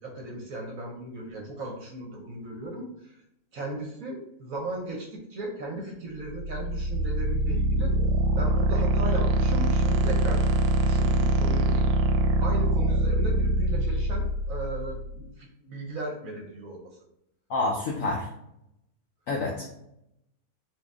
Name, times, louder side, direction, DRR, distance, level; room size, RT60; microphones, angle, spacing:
voice 1, 0.0-3.2 3.5-7.9 8.4-10.4 10.8-11.8 12.4-16.8 19.5-19.6, right 2 dB, 60° right, 1 dB, 1.0 m, -36 dB
sound 1, 6.3-15.2, right 1 dB, 90° right, 1.3 m, -24 dB
voice 2, 17.5-18.3 19.3-19.8, left 2 dB, 70° left, -1 dB, 0.7 m, -28 dB
4.3 x 2.6 x 3.4 m, 0.80 s
omnidirectional pair, 2.0 m